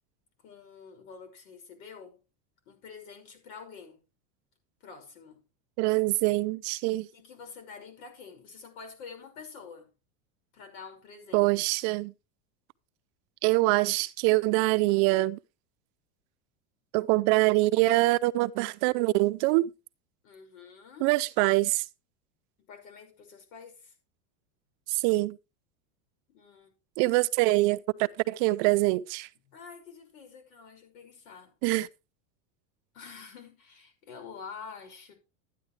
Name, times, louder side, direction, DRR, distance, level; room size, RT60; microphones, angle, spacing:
voice 1, 0.4-2.2 2.7-4.0 4.8-5.4 7.1-9.9 10.5-11.5 20.2-21.1 22.7-23.9 26.3-26.7 29.5-31.5 32.9-35.1, left 5 dB, 75° left, 5.9 m, -47 dB
voice 2, 5.8-7.1 11.3-12.1 13.4-15.4 16.9-19.7 21.0-21.8 24.9-25.4 27.0-29.3 31.6-31.9, right 20 dB, 50° right, 0.6 m, -24 dB
13.5 x 9.9 x 3.3 m
supercardioid pair, 145°, 42 cm